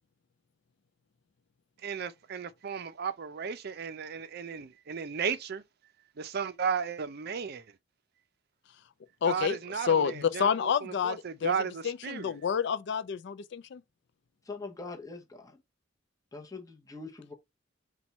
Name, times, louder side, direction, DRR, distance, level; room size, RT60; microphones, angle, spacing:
voice 1, 1.8-5.6 6.2-7.7 9.2-12.3, right 6 dB, 55° right, 0.5 m, -34 dB
voice 2, 9.2-11.1 11.4-11.5 11.8-13.8, left 7 dB, 60° left, 0.4 m, -29 dB
voice 3, 14.4-15.6 16.3-17.3, left 3 dB, 20° left, 0.8 m, -43 dB
4.4 x 2.3 x 4.1 m
head